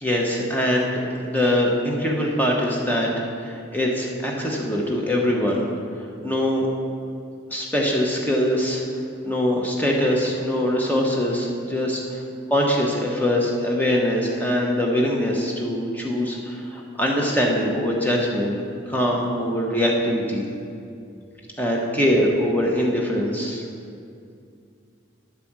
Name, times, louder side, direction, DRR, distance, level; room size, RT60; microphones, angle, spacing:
voice 1, 0.0-3.1 3.4-5.6 6.2-6.7 7.5-8.8 9.2-12.2 12.5-18.6 18.9-20.5 21.6-23.6, equal, 10° left, -1 dB, 1.1 m, -23 dB
10.5 x 5.1 x 7.3 m, 2.4 s
head